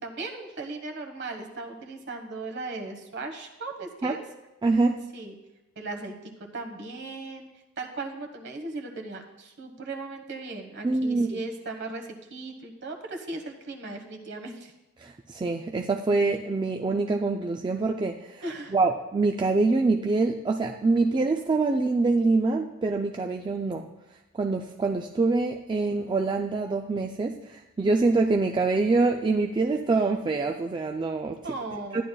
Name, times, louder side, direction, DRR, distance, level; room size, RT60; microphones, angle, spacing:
voice 1, 0.0-4.2 5.1-5.4 5.8-7.5 7.8-14.7 18.4-18.7 31.4-32.0, right 3 dB, 50° right, 4 dB, 1.2 m, -37 dB
voice 2, 4.6-5.0 10.8-11.4 15.0-18.4 18.7-23.8 24.3-31.4 31.9-32.0, right 3 dB, 20° right, 2 dB, 0.3 m, -25 dB
13.0 x 10.5 x 2.3 m, 0.99 s
head